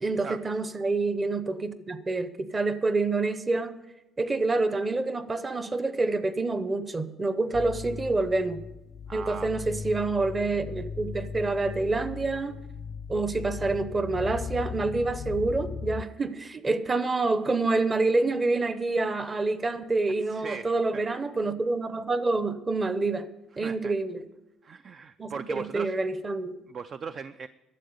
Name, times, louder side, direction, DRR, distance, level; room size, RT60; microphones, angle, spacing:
voice 1, 0.0-3.7 4.2-8.6 9.1-12.6 13.1-23.3 23.6-24.3 25.2-26.6, right 3 dB, 20° right, 13 dB, 0.8 m, -27 dB
sound 1, 7.5-16.1, left 6 dB, 35° left, 0.3 m, -38 dB
voice 2, 9.1-9.6 20.3-20.7 23.6-23.9 24.6-25.9 26.7-27.5, right 6 dB, 35° right, 12 dB, 0.4 m, -38 dB
12.0 x 7.4 x 8.0 m, 1.0 s
cardioid pair, 140°, 0 cm